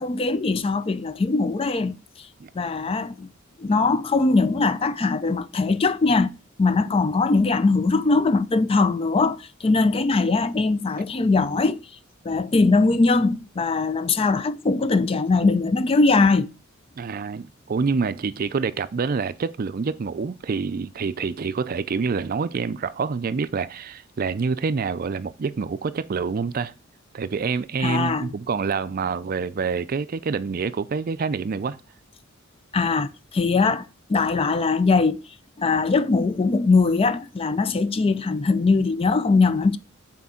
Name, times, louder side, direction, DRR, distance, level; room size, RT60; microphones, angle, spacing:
voice 1, 0.0-2.3 2.5-3.3 3.6-6.3 6.6-11.8 12.2-16.5 27.8-28.3 32.7-33.8 34.1-35.2 35.6-39.8, left 3 dB, 30° left, 0.4 m, -21 dB
voice 2, 17.0-26.7 27.1-31.8, right 5 dB, 45° right, 0.4 m, -27 dB
6.1 x 4.4 x 5.6 m
head